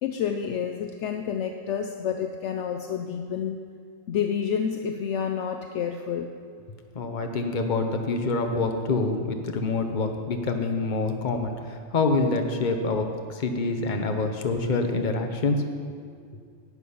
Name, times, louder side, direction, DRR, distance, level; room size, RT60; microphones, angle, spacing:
voice 1, 0.0-3.7 4.1-6.3, left 7 dB, 70° left, 5 dB, 0.8 m, -29 dB
voice 2, 6.9-15.6, left 3 dB, 40° left, 5 dB, 1.0 m, -26 dB
11.0 x 8.5 x 5.5 m, 2.2 s
omnidirectional pair, 1.3 m